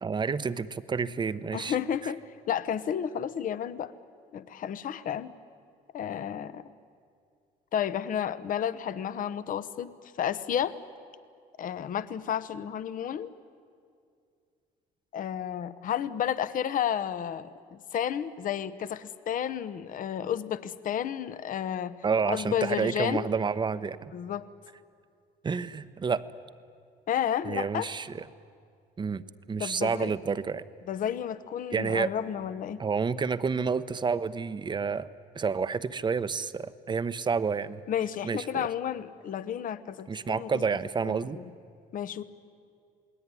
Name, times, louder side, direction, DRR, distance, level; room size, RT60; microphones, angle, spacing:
voice 1, 0.0-1.7 2.0-2.1 22.0-24.1 25.4-26.2 27.4-28.2 29.0-29.2 29.5-30.6 31.7-32.1 32.8-35.1 35.3-37.8 38.2-38.7 40.1-41.4, right 5 dB, 25° right, 13 dB, 0.9 m, -29 dB
voice 2, 1.5-2.2 2.5-3.9 4.3-5.3 5.9-6.6 7.7-10.7 11.6-13.3 15.1-22.0 22.3-23.3 24.1-24.5 27.1-27.9 29.6-30.1 30.9-32.8 37.9-40.6 41.0-41.4 41.9-42.2, left 9 dB, 55° left, 14 dB, 1.1 m, -32 dB
28.5 x 20.0 x 9.8 m, 2.3 s
cardioid pair, 110°, 17 cm